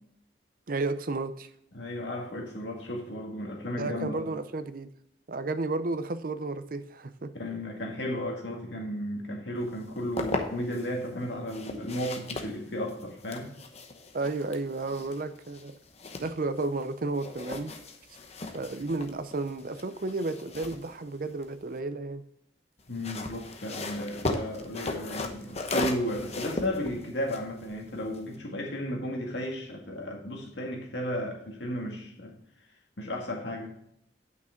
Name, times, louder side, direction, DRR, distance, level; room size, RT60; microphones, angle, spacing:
voice 1, 0.7-1.5 3.8-4.9 5.3-7.3 14.1-15.7 16.2-17.7 18.5-22.2, right 3 dB, 50° right, 0.6 m, -32 dB
voice 2, 1.7-4.3 7.3-13.5 22.9-32.4 33.0-33.7, left 1 dB, 75° left, 2.0 m, -34 dB
sound 1, 9.7-10.9 11.5-16.9 17.1-21.8 22.8-28.4, left 2 dB, 35° left, 0.9 m, -37 dB
8.7 x 6.1 x 4.4 m
head